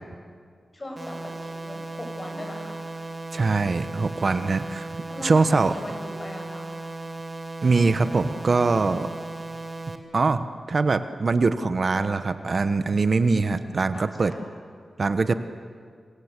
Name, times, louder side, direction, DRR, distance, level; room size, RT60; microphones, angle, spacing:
voice 1, 0.7-2.8 5.0-6.7 13.9-14.4, left 1 dB, 30° left, 2 dB, 7.3 m, -39 dB
sound 1, 1.0-10.0, right 2 dB, 30° right, 2.4 m, -36 dB
voice 2, 3.3-4.9 5.2-5.7 7.6-9.1 10.1-14.3 15.0-15.4, right 3 dB, 55° right, 10 dB, 1.1 m, -22 dB
28.0 x 24.0 x 8.2 m, 2.1 s
wide cardioid pair, 80°, 0 cm